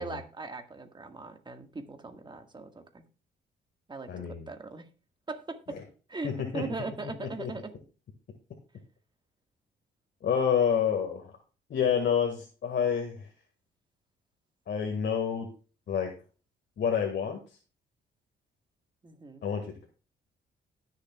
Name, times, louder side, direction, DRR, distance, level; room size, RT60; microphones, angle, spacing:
voice 1, 0.0-3.0 3.9-4.9 5.3-5.8 6.1-7.7 19.0-19.4, right 3 dB, 25° right, 6 dB, 1.7 m, -39 dB
voice 2, 4.1-4.5 5.7-5.8 6.2-6.6 7.2-7.5 10.2-11.3 11.7-13.3 14.7-15.5 15.9-16.1 16.8-17.4 19.4-19.9, left 7 dB, 60° left, 3 dB, 1.8 m, -28 dB
19.0 x 6.7 x 2.3 m, 0.36 s
cardioid pair, 90°, 20 cm